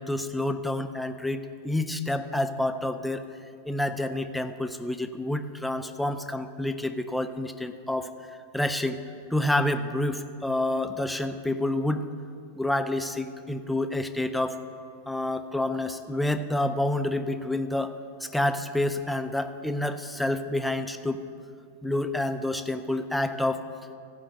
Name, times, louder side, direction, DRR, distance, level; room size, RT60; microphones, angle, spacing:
voice 1, 0.0-3.2 3.7-9.0 9.3-12.0 12.5-14.6 15.1-17.9 18.2-21.2 21.8-23.6, left 1 dB, 5° left, 8 dB, 0.6 m, -28 dB
15.0 x 5.6 x 7.6 m, 2.5 s
figure-of-eight pair, 90°, 0 cm